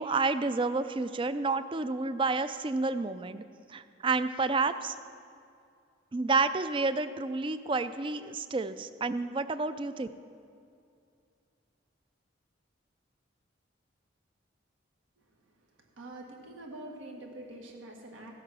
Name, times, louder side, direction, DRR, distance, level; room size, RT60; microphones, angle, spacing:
voice 1, 0.0-3.4 3.7-5.0 6.1-10.1, right 3 dB, 25° right, 13 dB, 0.4 m, -30 dB
voice 2, 16.0-18.3, right 1 dB, 90° right, 1 dB, 1.9 m, -45 dB
15.5 x 8.1 x 6.0 m, 2.4 s
head